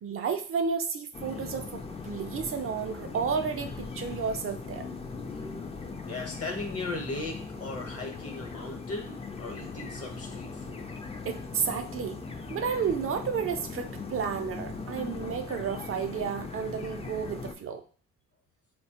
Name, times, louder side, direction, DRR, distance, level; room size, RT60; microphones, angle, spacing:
voice 1, 0.0-4.9 11.3-12.2 12.5-17.8, right 6 dB, 45° right, 7 dB, 0.5 m, -32 dB
sound 1, 1.1-17.6, left 4 dB, 20° left, 0.4 m, -39 dB
voice 2, 6.0-10.9, left 2 dB, 50° left, 3 dB, 0.9 m, -37 dB
4.1 x 2.2 x 2.8 m, 0.43 s
cardioid pair, 90°, 30 cm